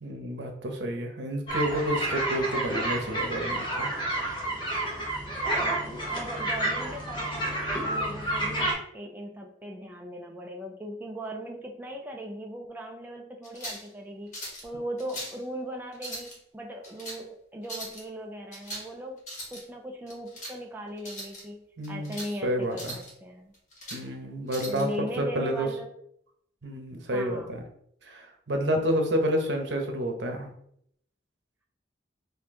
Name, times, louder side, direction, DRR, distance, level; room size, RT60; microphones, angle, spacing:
voice 1, 0.0-3.9 21.8-22.2 22.4-22.9 23.9-24.9 25.2-25.7 26.6-27.6 28.0-30.5, equal, 70° right, 3 dB, 0.9 m, -29 dB
sound 1, 1.5-8.7, right 1 dB, 25° left, 1.0 m, -30 dB
voice 2, 5.5-19.2 19.5-23.5 24.7-25.9 27.1-27.6, equal, 10° right, 1 dB, 0.4 m, -39 dB
sound 2, 13.4-13.9 14.3-14.7 15.0-15.4 15.9-16.4 16.8-17.2 17.6-18.0 18.5-18.9 19.2-19.6 20.1-20.6 21.0-21.4 21.8-22.3 22.7-23.1 23.5-24.0 24.5-24.8, equal, 40° left, 1.4 m, -40 dB
4.4 x 2.7 x 3.7 m, 0.71 s
head